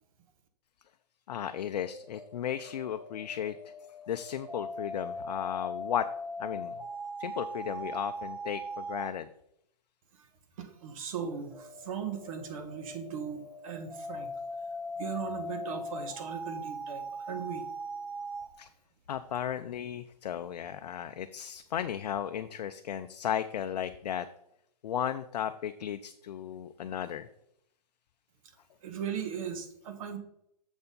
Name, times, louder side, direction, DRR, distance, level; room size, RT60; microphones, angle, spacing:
voice 1, 1.3-3.6 4.1-6.1 6.4-6.8 7.2-9.3 18.6-18.7 19.1-24.3 24.8-27.3, left 9 dB, 70° left, 9 dB, 0.5 m, -35 dB
sound 1, 1.8-9.2 11.2-18.5, equal, 5° right, 0.6 m, -40 dB
voice 2, 10.6-14.3 15.0-17.6 28.8-30.2, right 7 dB, 55° right, 8 dB, 1.4 m, -38 dB
6.9 x 4.3 x 5.3 m, 0.74 s
hypercardioid pair, 145°, 21 cm